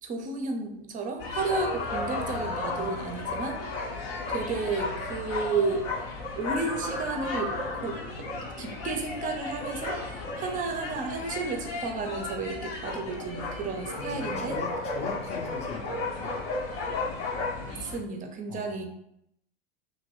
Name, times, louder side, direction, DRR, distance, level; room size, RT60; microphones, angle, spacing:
voice 1, 0.0-3.6 4.3-5.9 6.4-7.5 7.8-8.0 8.6-14.6 17.7-18.8, right 4 dB, 25° right, 5 dB, 0.5 m, -32 dB
sound 1, 1.2-18.0, left 3 dB, 65° left, 0.8 m, -34 dB
voice 2, 13.9-16.3 18.5-18.8, left 4 dB, 20° left, 1 dB, 0.5 m, -39 dB
2.9 x 2.6 x 3.0 m, 0.75 s
hypercardioid pair, 90°, 32 cm